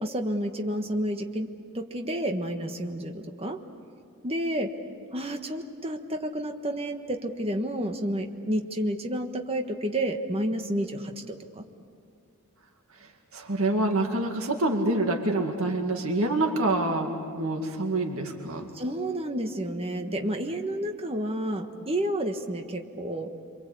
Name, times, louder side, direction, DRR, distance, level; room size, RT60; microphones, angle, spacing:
voice 1, 0.0-1.5 1.7-3.6 4.2-4.7 5.1-11.6 18.7-23.3, right 1 dB, 25° right, 4 dB, 1.4 m, -30 dB
voice 2, 13.0-18.7, right 2 dB, 70° right, 3 dB, 2.1 m, -27 dB
28.5 x 25.0 x 8.4 m, 2.3 s
head